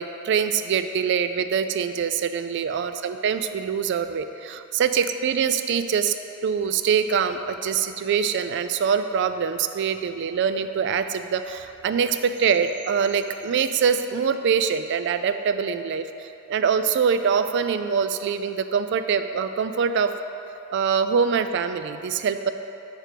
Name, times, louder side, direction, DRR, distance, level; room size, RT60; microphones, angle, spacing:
voice 1, 0.0-6.2 6.4-20.1 20.7-22.5, right 6 dB, 60° right, 10 dB, 0.3 m, -24 dB
8.0 x 3.3 x 5.8 m, 2.9 s
head